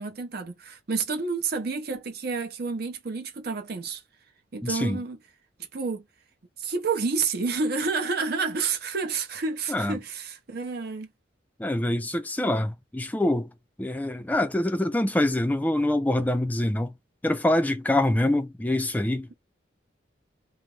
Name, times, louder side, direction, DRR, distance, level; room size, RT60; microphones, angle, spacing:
voice 1, 0.0-4.0 4.5-5.2 5.7-6.0 6.6-11.1, right 4 dB, 55° right, 0.7 m, -29 dB
voice 2, 4.6-5.0 9.7-10.0 11.6-13.5 13.8-16.9 17.2-19.3, left 1 dB, 10° left, 0.4 m, -25 dB
2.5 x 2.0 x 3.1 m
head